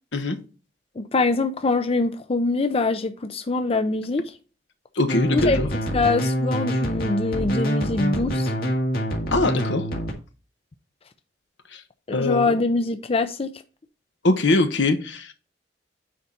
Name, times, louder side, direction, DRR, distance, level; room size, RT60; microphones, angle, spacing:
voice 1, 1.0-4.4 5.3-5.6 5.9-8.5 12.1-13.5, left 3 dB, 35° left, 0.5 m, -23 dB
voice 2, 5.0-5.7 9.3-9.8 11.7-11.8 12.1-12.5 14.2-15.3, left 2 dB, 80° left, 1.1 m, -22 dB
sound 1, 5.1-10.1, equal, 60° left, 1.9 m, -25 dB
9.2 x 4.0 x 4.3 m
head